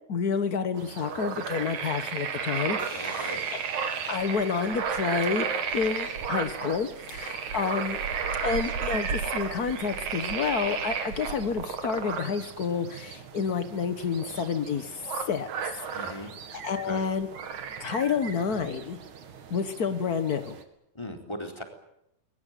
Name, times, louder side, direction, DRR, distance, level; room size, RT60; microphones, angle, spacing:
voice 1, 0.1-2.8 3.0-3.6 4.1-5.5 5.7-8.0 8.4-16.3 16.6-17.3 17.8-19.0 19.5-20.6, left 6 dB, 75° left, 10 dB, 0.8 m, -29 dB
sound 1, 0.7-20.6, right 6 dB, 65° right, 3.4 m, -34 dB
sound 2, 2.8-6.6, left 4 dB, 40° left, 3.3 m, -50 dB
voice 2, 2.9-3.4 15.9-16.3 16.7-17.0 20.9-21.6, equal, 10° left, 4 dB, 3.8 m, -38 dB
21.5 x 21.5 x 9.2 m, 0.80 s
omnidirectional pair, 3.7 m